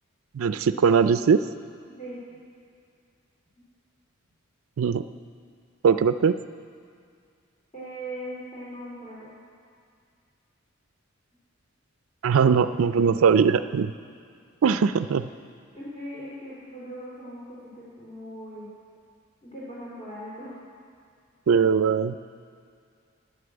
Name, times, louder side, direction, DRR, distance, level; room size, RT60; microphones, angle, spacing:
voice 1, 0.3-1.4 4.8-5.0 5.8-6.3 12.2-13.9 14.6-15.3 21.5-22.2, right 6 dB, 85° right, 12 dB, 0.4 m, -20 dB
voice 2, 1.9-2.2 7.7-9.3 15.7-18.7 19.4-20.5, equal, 30° left, -9 dB, 2.9 m, -39 dB
10.0 x 9.6 x 7.9 m, 2.3 s
head